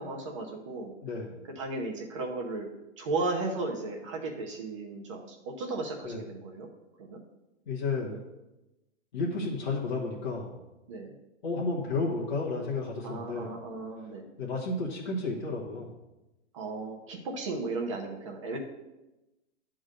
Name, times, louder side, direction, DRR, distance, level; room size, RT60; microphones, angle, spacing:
voice 1, 0.0-0.9 1.6-2.7 3.0-6.7 7.0-7.2 10.9-11.1 13.0-14.3 16.5-18.6, right 3 dB, 25° right, 0 dB, 0.9 m, -35 dB
voice 2, 1.0-1.4 6.0-6.2 7.7-8.2 9.1-10.6 11.4-13.5 14.4-15.9, left 3 dB, 40° left, -4 dB, 1.5 m, -32 dB
11.0 x 3.8 x 6.6 m, 0.99 s
hypercardioid pair, 170°, 36 cm